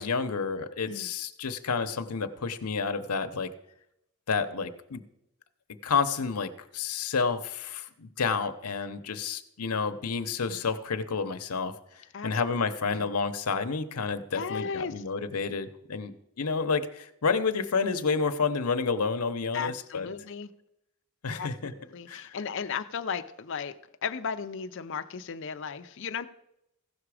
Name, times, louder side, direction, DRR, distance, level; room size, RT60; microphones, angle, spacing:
voice 1, 0.0-3.5 4.3-5.0 5.8-20.1 21.2-21.7 22.1-22.3, left 5 dB, 85° left, 9 dB, 0.8 m, -30 dB
voice 2, 14.3-14.9 19.5-20.5 21.3-21.5 21.8-23.8 24.0-26.3, left 6 dB, 55° left, 9 dB, 0.6 m, -35 dB
15.5 x 6.0 x 4.9 m, 0.81 s
head